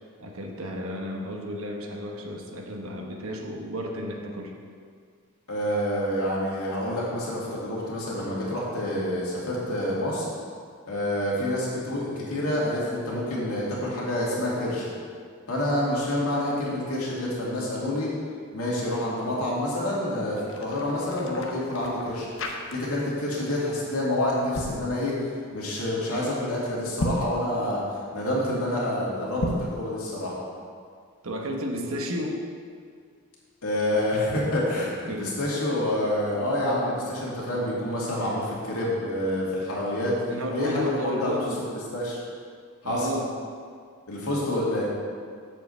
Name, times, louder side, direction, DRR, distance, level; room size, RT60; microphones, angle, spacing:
voice 1, 0.2-4.6 31.2-32.5 35.1-35.4 40.3-41.6 42.8-43.3, equal, 75° right, 1 dB, 1.1 m, -32 dB
voice 2, 5.5-10.2 10.9-14.9 15.5-18.1 18.5-22.3 22.7-25.1 25.5-27.8 28.1-30.3 33.6-40.1 40.5-41.4 41.9-42.2 42.8-43.1 44.1-44.8, left 1 dB, 85° left, -6 dB, 2.5 m, -27 dB
sound 1, 20.2-23.2 23.4-23.7 24.3-24.8 26.8-27.4 29.3-29.8, left 1 dB, 60° left, 0.8 m, -33 dB
7.6 x 4.8 x 6.9 m, 2.1 s
head